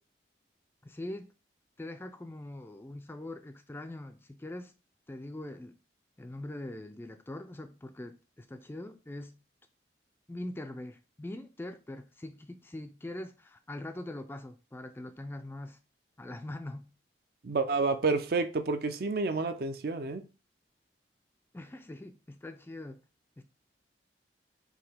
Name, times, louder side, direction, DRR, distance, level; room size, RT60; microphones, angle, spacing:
voice 1, 0.8-1.3 1.8-4.7 5.1-5.8 6.2-9.4 10.3-15.8 16.2-16.9 21.5-23.0 23.4-23.5, left 1 dB, 15° left, 0.3 m, -42 dB
voice 2, 17.4-20.2, right 3 dB, 55° right, 0.5 m, -29 dB
4.9 x 3.2 x 3.4 m
head